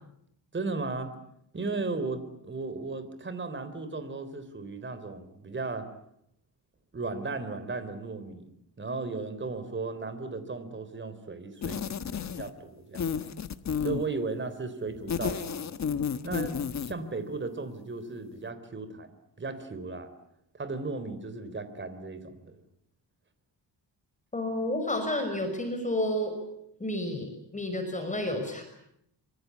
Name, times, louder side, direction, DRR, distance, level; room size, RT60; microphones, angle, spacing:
voice 1, 0.5-1.2 1.5-5.9 6.9-8.5 8.8-11.8 12.1-13.1 13.8-15.7 16.2-16.6 16.8-20.1 20.5-22.6, right 3 dB, 25° right, 11 dB, 3.9 m, -35 dB
sound 1, 11.6-12.6 13.0-14.1 15.0-17.0, left 7 dB, 40° left, 1.4 m, -32 dB
voice 2, 24.3-26.3 26.8-28.6, left 1 dB, 15° left, 6 dB, 5.8 m, -30 dB
25.5 x 25.0 x 8.5 m, 0.76 s
cardioid pair, 135°, 42 cm